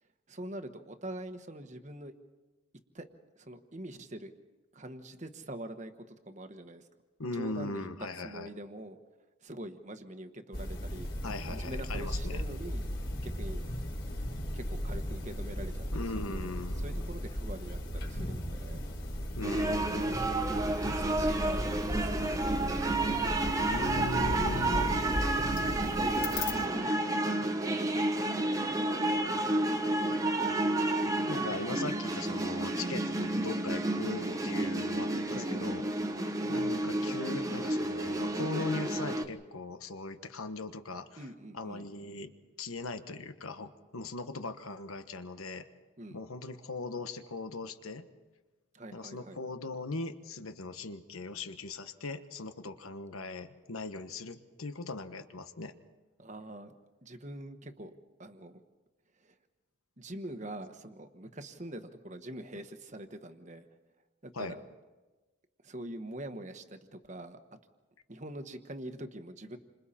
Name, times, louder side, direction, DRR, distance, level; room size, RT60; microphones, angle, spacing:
voice 1, 0.3-2.1 2.9-3.1 3.4-4.3 4.7-6.8 7.3-9.0 9.4-11.1 11.4-12.8 13.2-13.6 14.5-15.9 16.1-16.5 16.8-18.8 20.8-22.4 23.8-24.1 24.7-27.4 28.1-30.1 35.3-35.7 41.2-41.9 46.0-46.2 48.7-49.4 56.2-56.7 57.0-57.9 58.2-58.6 59.2-59.3 60.0-63.7 64.2-64.6 65.6-67.4 68.1-69.6, right 1 dB, 35° right, 8 dB, 1.2 m, -44 dB
voice 2, 7.2-8.5 11.2-12.4 15.9-17.0 19.4-20.0 23.6-24.9 31.3-35.8 36.5-41.2 41.5-42.3 42.6-45.7 46.1-48.1 48.9-55.7 64.3-64.5, left 3 dB, 85° left, 9 dB, 1.3 m, -39 dB
sound 1, 10.5-26.5, equal, 55° left, 4.3 m, -36 dB
sound 2, 19.4-39.2, right 2 dB, 15° right, 1.0 m, -31 dB
29.0 x 26.0 x 4.3 m, 1.2 s
head